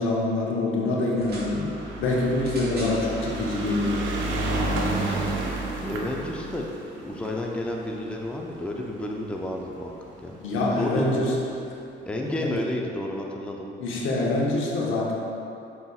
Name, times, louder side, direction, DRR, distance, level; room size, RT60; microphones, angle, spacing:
voice 1, 0.0-4.0 10.4-11.3 12.2-12.6 13.8-15.1, left 2 dB, 85° left, -3 dB, 0.8 m, -25 dB
sound 1, 1.1-1.5 2.4-3.0 3.9-4.0, right 1 dB, 50° right, 1.2 m, -40 dB
sound 2, 1.2-9.7 10.5-10.6 10.8-10.9 11.1-11.2, right 2 dB, 75° right, 0.7 m, -31 dB
voice 2, 5.0-5.5 5.8-6.7 7.0-10.4 10.8-11.1 12.1-13.7, left 1 dB, 5° left, 0 dB, 0.4 m, -31 dB
5.5 x 4.0 x 2.3 m, 2.7 s
cardioid pair, 90°, 20 cm